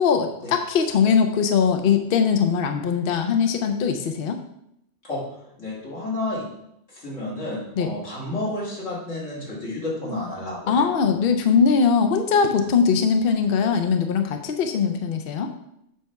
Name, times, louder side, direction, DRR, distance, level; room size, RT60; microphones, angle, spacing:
voice 1, 0.0-4.4 7.8-7.9 10.7-15.5, left 6 dB, 60° left, 6 dB, 0.7 m, -21 dB
voice 2, 5.6-6.4 6.9-10.9, left 2 dB, 90° left, -6 dB, 2.7 m, -31 dB
7.5 x 3.3 x 5.7 m, 0.76 s
omnidirectional pair, 1.2 m